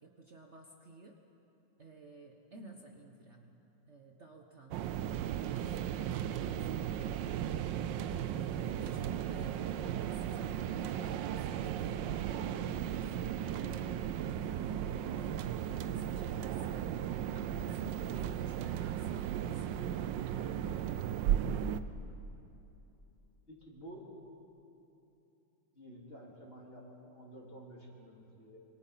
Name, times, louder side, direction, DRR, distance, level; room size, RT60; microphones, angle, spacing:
voice 1, 0.0-1.2 1.8-3.5 3.9-4.9 5.2-7.2 8.8-14.8 15.1-16.8 17.3-19.8, right 2 dB, 40° right, 2 dB, 1.4 m, -53 dB
sound 1, 4.7-21.8, right 10 dB, 80° right, 1.4 m, -36 dB
voice 2, 23.5-24.1 25.7-28.6, right 1 dB, 30° left, -2 dB, 3.6 m, -51 dB
27.0 x 24.0 x 5.8 m, 2.9 s
omnidirectional pair, 2.0 m